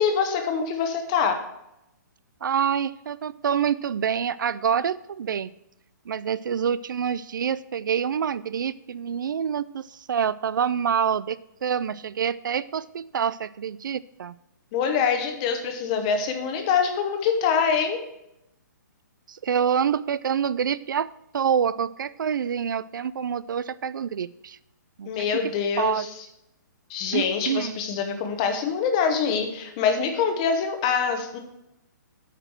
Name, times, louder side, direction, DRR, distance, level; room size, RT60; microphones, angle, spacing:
voice 1, 0.0-1.4 14.7-18.0 25.1-26.1 26.9-31.4, left 6 dB, 20° left, 5 dB, 0.9 m, -24 dB
voice 2, 2.4-5.5 6.1-14.3 19.3-24.6 25.0-25.3 25.8-26.1 27.1-27.8, right 8 dB, 85° right, 19 dB, 0.4 m, -26 dB
8.8 x 5.0 x 6.1 m, 0.84 s
hypercardioid pair, 175°, 10 cm